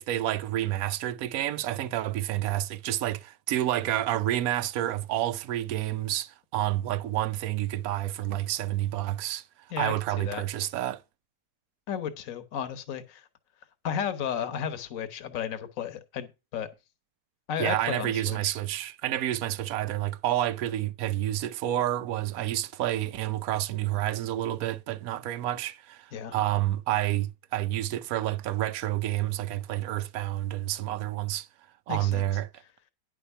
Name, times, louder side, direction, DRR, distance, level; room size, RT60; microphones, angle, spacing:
voice 1, 0.0-9.4 9.8-11.0 17.6-31.5 31.9-32.5, right 13 dB, 65° right, 1.1 m, -29 dB
voice 2, 9.7-10.4 11.9-13.3 13.8-16.7 17.5-18.5 26.1-26.3 31.9-32.2, left 8 dB, 55° left, 1.4 m, -33 dB
10.0 x 6.1 x 5.5 m
omnidirectional pair, 1.7 m